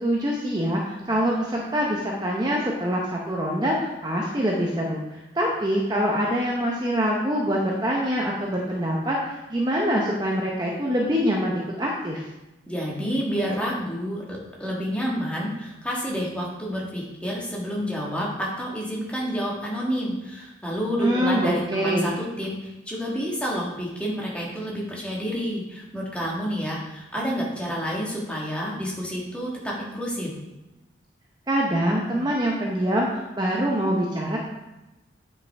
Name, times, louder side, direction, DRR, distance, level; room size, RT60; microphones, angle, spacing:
voice 1, 0.0-12.2 21.0-22.1 31.5-34.4, equal, 20° right, -2 dB, 0.7 m, -24 dB
voice 2, 12.7-30.3, equal, 5° left, -4 dB, 1.5 m, -29 dB
9.0 x 5.4 x 3.4 m, 1.0 s
head